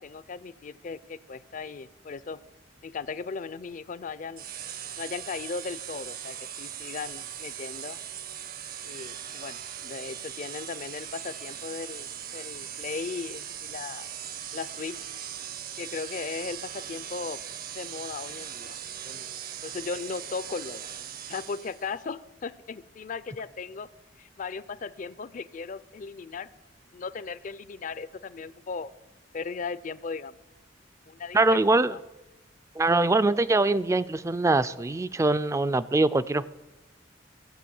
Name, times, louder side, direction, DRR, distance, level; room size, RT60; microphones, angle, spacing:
voice 1, 0.0-2.4 2.8-4.4 5.0-8.0 8.8-14.1 14.5-15.1 15.8-17.4 17.7-18.8 19.0-19.3 19.6-20.9 21.3-23.9 24.2-26.5 26.9-28.9 29.3-30.4 31.1-32.0, left 5 dB, 45° left, 17 dB, 0.5 m, -37 dB
sound 1, 4.4-21.9, right 9 dB, 55° right, 0.8 m, -39 dB
voice 2, 31.3-31.9 32.8-36.4, right 2 dB, 15° right, 16 dB, 0.4 m, -23 dB
15.5 x 7.8 x 7.0 m, 1.1 s
head